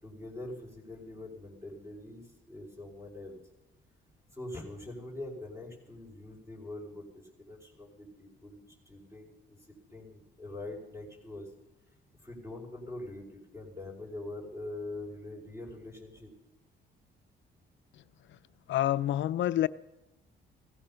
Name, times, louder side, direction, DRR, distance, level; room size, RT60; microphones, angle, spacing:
voice 1, 0.0-3.4 4.3-9.6 9.9-11.5 12.2-16.3, left 2 dB, 10° right, 5.1 m, -43 dB
voice 2, 18.7-19.7, left 12 dB, 70° left, 0.5 m, -27 dB
17.0 x 14.5 x 5.7 m
cardioid pair, 90°, 20 cm